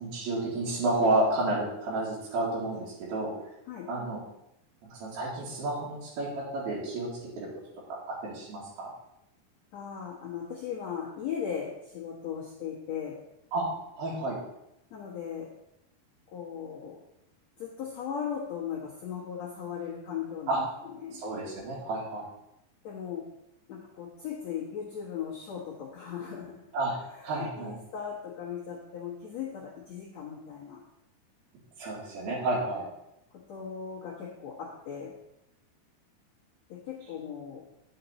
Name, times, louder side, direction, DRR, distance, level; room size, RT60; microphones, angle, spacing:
voice 1, 0.0-3.3 3.9-4.2 4.9-7.5 8.2-8.9 13.5-13.6 14.0-14.4 20.5-20.6 21.1-22.3 26.7-27.0 27.2-27.8 31.8-32.8, right 2 dB, 70° right, -7 dB, 4.0 m, -30 dB
voice 2, 9.7-13.2 14.9-15.5 16.3-17.0 17.6-20.6 21.0-21.2 22.8-23.3 23.7-26.6 27.1-30.8 33.3-35.2 36.7-37.7, left 8 dB, 55° left, -5 dB, 2.1 m, -38 dB
10.5 x 6.9 x 4.1 m, 0.83 s
omnidirectional pair, 4.6 m